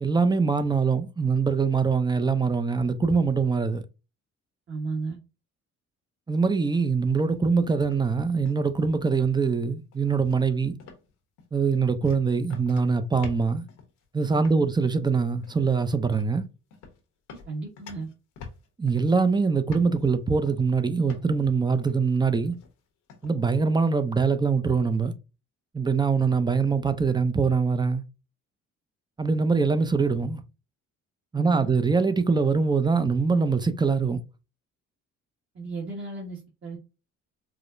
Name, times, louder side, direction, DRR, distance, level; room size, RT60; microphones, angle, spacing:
voice 1, 0.0-3.8 6.3-10.8 11.5-13.6 14.1-16.5 18.8-22.6 23.2-25.1 25.7-28.0 29.2-30.4 31.3-34.2, right 5 dB, 15° right, 0.5 m, -23 dB
voice 2, 4.7-5.2 14.3-14.7 17.3-18.1 31.3-31.7 35.5-36.8, right 4 dB, 40° right, 1.3 m, -34 dB
sound 1, 7.3-7.6 7.9-8.8 9.1-9.5 9.9-10.4 10.8-11.1 11.4-14.0 14.4-14.7 15.4-15.8 16.1-16.4 16.7-17.0 17.3-19.3 19.7-20.1 20.5-20.8 21.1-21.5 21.8-22.1 22.5-22.8 23.1-23.6, left 5 dB, 85° left, 1.1 m, -47 dB
4.8 x 2.1 x 2.6 m
cardioid pair, 90°, 30 cm